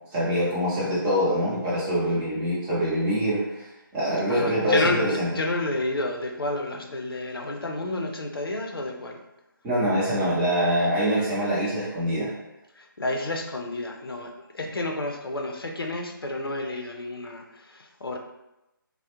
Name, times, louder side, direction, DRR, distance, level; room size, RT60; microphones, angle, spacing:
voice 1, 0.1-3.7 3.9-5.3 9.6-12.3, equal, 10° right, -8 dB, 0.6 m, -24 dB
voice 2, 4.3-9.2 12.8-14.3 14.5-17.4 17.7-18.2, left 2 dB, 85° left, 2 dB, 0.5 m, -30 dB
2.3 x 2.0 x 2.9 m, 0.92 s
figure-of-eight pair, 155°, 12 cm